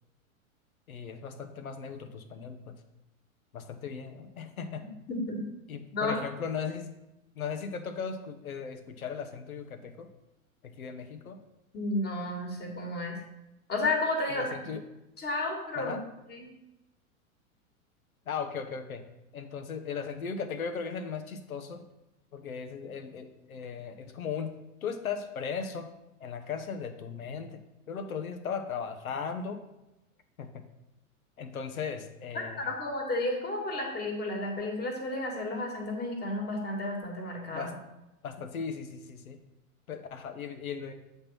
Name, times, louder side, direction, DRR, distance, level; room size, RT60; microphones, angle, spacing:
voice 1, 0.9-2.8 3.5-4.8 5.7-6.9 7.4-10.1 10.6-11.4 14.3-14.8 15.8-16.0 18.3-19.0 19.3-21.8 22.3-24.5 24.8-25.9 26.2-29.6 30.4-30.6 31.4-32.7 37.5-37.7 38.2-39.4 39.9-40.9, left 6 dB, 80° left, 8 dB, 0.9 m, -37 dB
voice 2, 5.1-5.4 5.9-6.2 11.7-13.2 13.7-14.7 15.2-16.0 16.3-16.5 32.3-37.7, left 2 dB, 25° left, 1 dB, 1.8 m, -32 dB
7.9 x 3.6 x 5.7 m, 0.95 s
hypercardioid pair, 95°, 42 cm